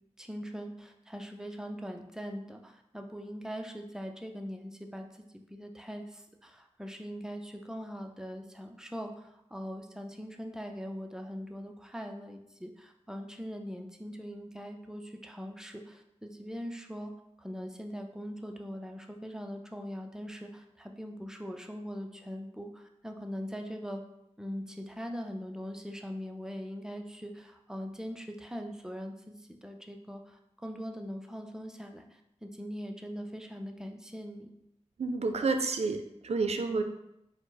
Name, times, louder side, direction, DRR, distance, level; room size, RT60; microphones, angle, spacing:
voice 1, 0.2-17.1 17.4-24.0 24.4-34.5, equal, 5° right, 3 dB, 0.4 m, -41 dB
voice 2, 35.0-36.8, right 4 dB, 65° right, 6 dB, 0.4 m, -30 dB
4.7 x 2.0 x 3.9 m, 0.82 s
wide cardioid pair, 85°, 12 cm